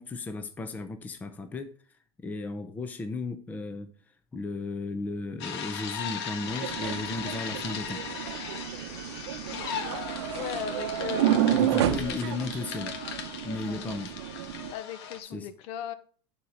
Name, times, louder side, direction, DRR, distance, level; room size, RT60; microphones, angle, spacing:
voice 1, 0.0-8.0 11.5-12.9 13.4-14.1 15.2-15.5, left 3 dB, 10° left, 0.6 m, -35 dB
sound 1, 5.4-15.2, left 7 dB, 70° left, 1.6 m, -38 dB
sound 2, 6.4-14.7, right 11 dB, 80° right, 0.7 m, -30 dB
voice 2, 9.5-9.9 10.3-11.7 13.6-13.8 14.7-15.9, left 11 dB, 45° left, 0.8 m, -38 dB
11.0 x 4.4 x 4.9 m
supercardioid pair, 155°, 14 cm